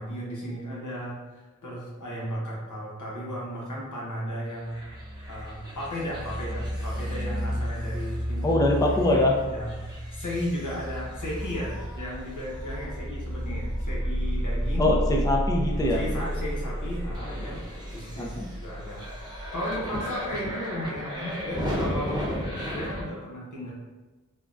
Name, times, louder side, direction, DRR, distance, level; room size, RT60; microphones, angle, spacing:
voice 1, 0.0-4.8 5.3-8.5 9.1-14.9 15.9-19.1 19.5-22.2 22.7-23.7, equal, 80° left, -5 dB, 0.9 m, -35 dB
sound 1, 4.7-23.0, equal, 15° right, 0.8 m, -32 dB
voice 2, 8.4-9.4 14.8-16.0 18.2-18.4, left 1 dB, 10° left, -1 dB, 0.4 m, -23 dB
3.4 x 2.2 x 2.5 m, 1.2 s
wide cardioid pair, 50°, 30 cm